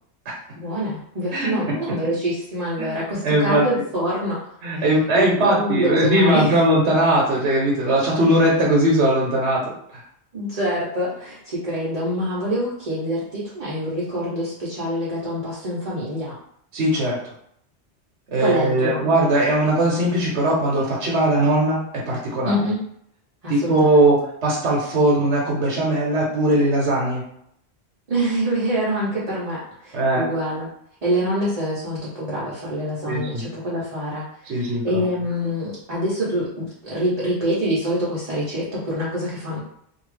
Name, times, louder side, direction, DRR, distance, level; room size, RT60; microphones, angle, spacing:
voice 1, 0.6-4.4 4.7-4.9 5.1-6.6 10.3-16.3 18.4-19.0 22.4-22.8 23.4-24.1 28.1-30.7 31.0-39.6, equal, 40° right, -7 dB, 0.8 m, -25 dB
voice 2, 2.8-3.6 4.6-10.0 16.7-17.2 18.3-22.6 23.5-27.2 29.9-30.2 33.0-33.5 34.5-35.0, right 1 dB, 85° right, -3 dB, 1.0 m, -20 dB
2.7 x 2.4 x 3.1 m, 0.72 s
omnidirectional pair, 1.1 m